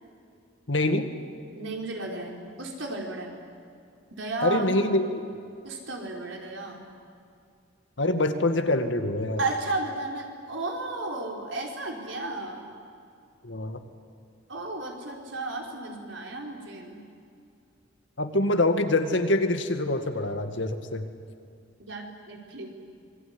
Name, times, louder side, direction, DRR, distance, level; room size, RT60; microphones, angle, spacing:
voice 1, 0.7-1.1 4.4-5.1 8.0-9.4 13.4-13.8 18.2-21.1, left 2 dB, 70° left, 7 dB, 2.1 m, -25 dB
voice 2, 1.6-3.3 4.1-4.7 5.6-6.8 9.4-12.6 14.5-17.0 21.8-22.7, right 2 dB, 75° right, 1 dB, 5.0 m, -33 dB
26.5 x 22.0 x 9.9 m, 2.5 s
head